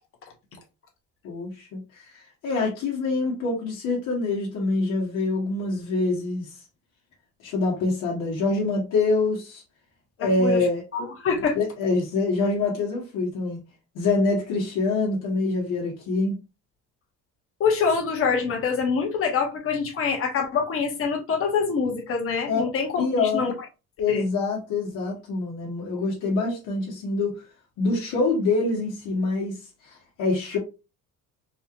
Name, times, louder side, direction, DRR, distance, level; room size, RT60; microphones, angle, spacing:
voice 1, 1.2-1.8 2.1-6.4 7.4-9.6 10.2-10.8 11.5-13.6 13.9-16.3 22.5-22.6 23.0-23.4 24.0-27.4 27.8-29.6 29.8-30.6, left 3 dB, 85° left, 1.5 m, -25 dB
voice 2, 10.2-11.6 17.6-23.5 24.1-24.3, left 5 dB, 45° left, 1.3 m, -25 dB
4.1 x 2.6 x 2.9 m
cardioid pair, 130°, 31 cm